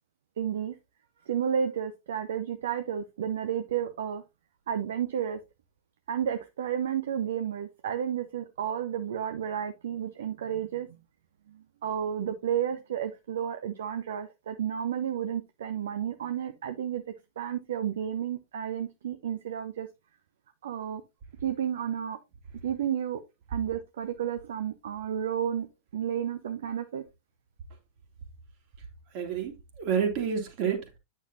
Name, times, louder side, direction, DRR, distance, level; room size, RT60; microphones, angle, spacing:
voice 1, 0.4-0.8 1.3-4.2 4.7-5.4 6.1-10.9 11.5-17.0 17.4-19.9 20.6-21.0 21.4-22.2 22.6-23.2 23.5-25.7 25.9-27.0, right 9 dB, 60° right, 0.6 m, -31 dB
voice 2, 29.1-31.0, right 7 dB, 45° right, 2.2 m, -29 dB
9.1 x 6.6 x 2.7 m
figure-of-eight pair, 90°, 0 cm